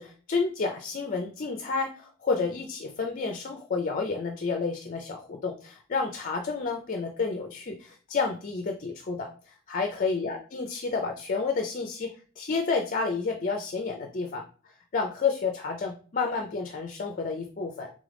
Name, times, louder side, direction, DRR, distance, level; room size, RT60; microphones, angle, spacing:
voice 1, 0.0-12.1 12.4-14.4 14.9-17.9, left 4 dB, 40° left, 4 dB, 0.5 m, -30 dB
3.8 x 3.7 x 3.3 m, 0.41 s
head